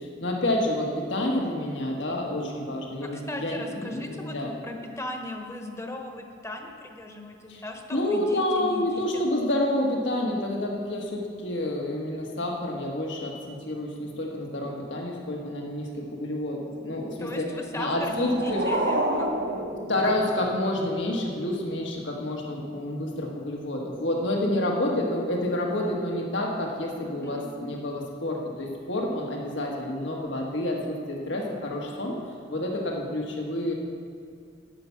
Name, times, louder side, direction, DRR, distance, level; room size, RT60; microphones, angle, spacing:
voice 1, 0.0-4.5 7.5-7.6 7.9-17.5 17.7-18.6 19.9-32.1 32.5-33.7, left 1 dB, 75° left, 0 dB, 1.6 m, -29 dB
voice 2, 3.0-9.2 17.2-19.6 27.2-27.5, left 1 dB, 15° left, 3 dB, 1.0 m, -38 dB
sound 1, 17.8-20.8, right 1 dB, 85° right, 1.4 m, -29 dB
10.5 x 8.4 x 5.9 m, 2.4 s
head